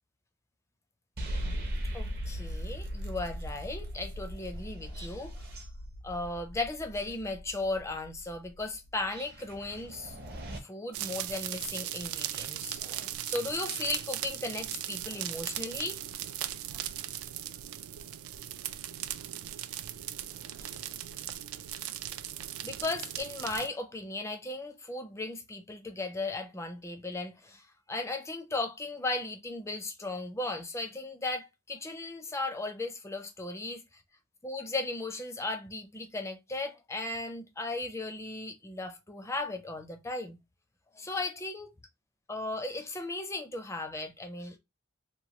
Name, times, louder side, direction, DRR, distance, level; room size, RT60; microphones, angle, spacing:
sound 1, 1.2-10.6, equal, 45° right, 0.7 m, -39 dB
voice 1, 1.9-5.5 6.0-10.2 10.6-16.0 20.6-20.8 22.6-33.8 34.4-40.4 40.9-41.7 42.3-44.6, left 2 dB, 15° left, 0.4 m, -36 dB
sound 2, 10.9-23.7, right 12 dB, 75° right, 0.3 m, -38 dB
3.0 x 2.2 x 2.8 m
head